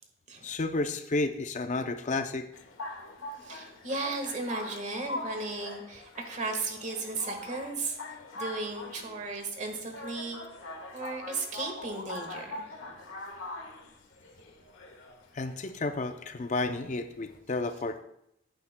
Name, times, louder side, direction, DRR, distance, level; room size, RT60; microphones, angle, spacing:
voice 1, 0.4-2.5 15.3-18.0, left 3 dB, 35° left, 8 dB, 0.5 m, -31 dB
sound 1, 2.5-17.4, left 2 dB, 85° left, 1.4 m, -43 dB
voice 2, 3.4-8.0 8.3-10.4 10.9-12.7, right 3 dB, 35° right, 4 dB, 1.4 m, -35 dB
15.0 x 8.7 x 2.2 m, 0.76 s
head